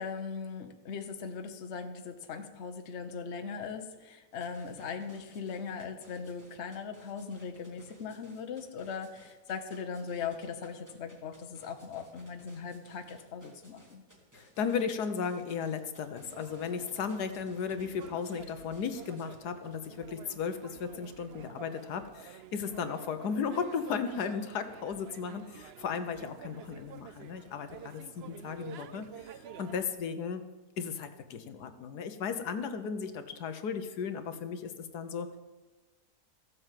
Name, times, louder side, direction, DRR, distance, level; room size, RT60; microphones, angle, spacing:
voice 1, 0.0-14.0, left 6 dB, 45° left, 7 dB, 1.2 m, -39 dB
sound 1, 4.3-19.4, equal, 10° right, 2.3 m, -60 dB
voice 2, 14.3-30.4 30.8-35.4, left 6 dB, 75° left, 9 dB, 1.4 m, -35 dB
sound 2, 16.1-29.9, right 9 dB, 75° right, 0.5 m, -50 dB
14.5 x 8.1 x 7.4 m, 1.2 s
omnidirectional pair, 1.7 m